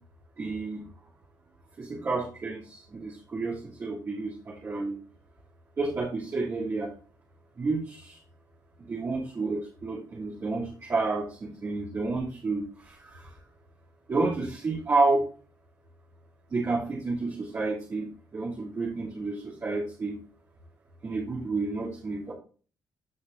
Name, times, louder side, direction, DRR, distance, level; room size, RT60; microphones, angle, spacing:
voice 1, 0.4-0.8 1.8-5.0 5.8-6.9 7.6-8.2 8.8-13.4 14.1-15.3 16.5-20.2 21.0-22.3, right 3 dB, 40° right, -8 dB, 3.0 m, -30 dB
15.0 x 5.4 x 2.7 m, 0.39 s
cardioid pair, 130°, 7 cm